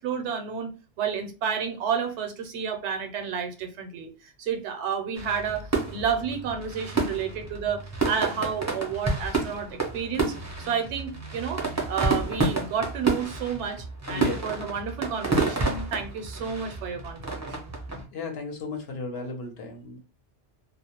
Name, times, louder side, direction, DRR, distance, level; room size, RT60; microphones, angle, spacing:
voice 1, 0.0-17.7, right 7 dB, 80° right, 0.9 m, -31 dB
sound 1, 5.1-18.0, right 3 dB, 25° right, 0.4 m, -30 dB
voice 2, 14.1-14.4 18.1-20.0, left 3 dB, 65° left, 0.9 m, -34 dB
2.3 x 2.1 x 2.8 m
omnidirectional pair, 1.2 m